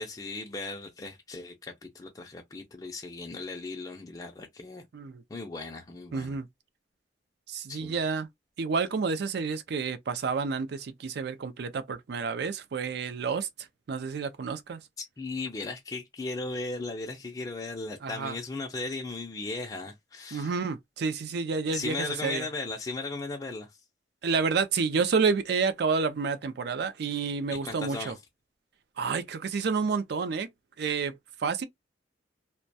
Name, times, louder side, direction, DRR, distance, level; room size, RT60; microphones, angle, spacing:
voice 1, 0.0-4.8 5.3-6.4 7.7-7.9 15.0-20.5 21.7-23.7 27.5-28.2, left 3 dB, 20° left, 0.4 m, -37 dB
voice 2, 6.1-6.5 7.5-8.3 8.6-14.8 18.0-18.4 20.3-22.5 24.2-28.1 29.0-30.5 30.8-31.1 31.4-31.6, right 5 dB, 65° right, 0.4 m, -29 dB
2.2 x 2.1 x 2.6 m
head